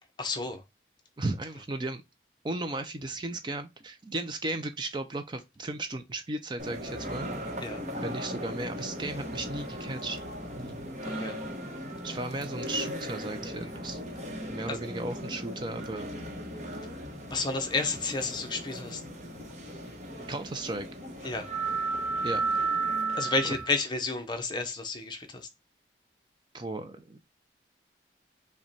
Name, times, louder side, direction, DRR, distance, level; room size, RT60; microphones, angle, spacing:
voice 1, 0.2-0.6 7.6-7.8 11.1-11.4 14.7-14.8 17.3-19.0 21.2-21.5 23.2-25.5, left 3 dB, 25° left, 0.7 m, -31 dB
voice 2, 1.2-2.0 2.4-7.5 8.0-10.2 10.5-10.8 12.0-14.0 14.5-16.1 20.3-20.9 22.2-22.4 23.4-23.5 26.5-27.2, right 2 dB, 25° right, 0.4 m, -35 dB
sound 1, 6.6-23.7, right 2 dB, 40° right, 0.9 m, -36 dB
5.8 x 2.2 x 4.0 m
head